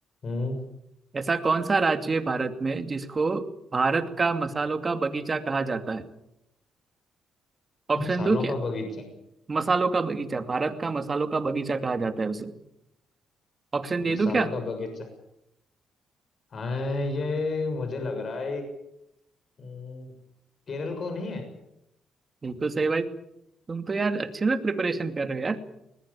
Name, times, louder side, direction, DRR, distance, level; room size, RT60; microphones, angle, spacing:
voice 1, 0.2-0.6 7.9-9.0 14.0-15.1 16.5-18.6 19.6-20.1 20.7-21.5, left 3 dB, 50° left, 6 dB, 6.8 m, -31 dB
voice 2, 1.1-3.4 3.7-6.0 7.9-8.5 9.5-12.5 13.7-14.5 22.4-23.1 23.7-25.6, right 4 dB, 30° right, 8 dB, 2.5 m, -26 dB
21.0 x 20.5 x 8.6 m, 0.82 s
cardioid pair, 90°, 0 cm